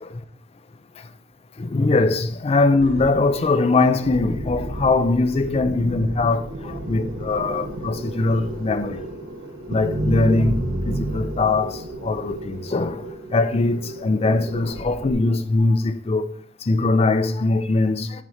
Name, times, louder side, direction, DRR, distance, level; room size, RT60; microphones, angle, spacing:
voice 1, 1.6-9.1 9.7-10.6 10.9-16.3 16.6-18.2, left 3 dB, 35° left, 0.4 m, -21 dB
sound 1, 2.8-15.1, right 1 dB, 90° right, 1.1 m, -31 dB
7.3 x 4.1 x 4.9 m
head